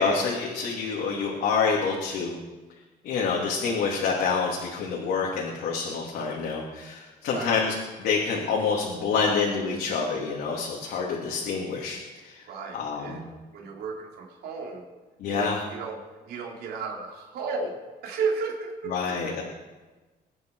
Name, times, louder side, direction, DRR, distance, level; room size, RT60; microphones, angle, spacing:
voice 1, 0.0-2.4 3.0-7.7 8.0-12.0 12.2-12.4 12.7-13.2 15.2-15.6 18.9-19.4, left 5 dB, 75° left, -2 dB, 2.9 m, -27 dB
voice 2, 12.5-13.3 13.5-14.8 15.3-19.3, right 4 dB, 70° right, -1 dB, 3.7 m, -34 dB
23.5 x 9.7 x 4.8 m, 1.2 s
cardioid pair, 110°, 17 cm